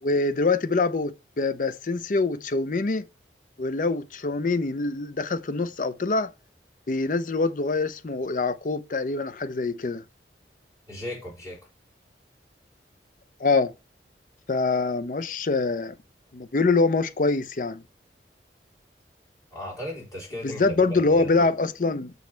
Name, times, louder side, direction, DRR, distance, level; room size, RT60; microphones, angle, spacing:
voice 1, 0.0-3.1 3.6-6.3 6.9-10.0 13.4-13.7 14.5-15.9 16.3-17.8 20.4-22.1, left 3 dB, 45° left, 0.5 m, -24 dB
voice 2, 10.9-11.6 19.5-21.5, left 1 dB, 20° left, 3.6 m, -36 dB
6.3 x 5.3 x 4.4 m
head